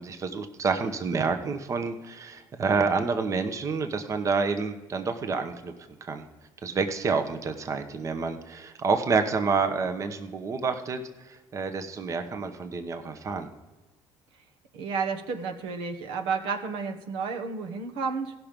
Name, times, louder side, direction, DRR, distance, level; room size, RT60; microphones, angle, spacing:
voice 1, 0.0-5.7 6.0-6.2 6.6-11.0 11.3-13.5, right 4 dB, 35° right, 7 dB, 0.9 m, -28 dB
voice 2, 14.7-18.3, right 5 dB, 85° right, 4 dB, 1.2 m, -31 dB
15.5 x 6.0 x 5.1 m, 1.1 s
cardioid pair, 105°, 9 cm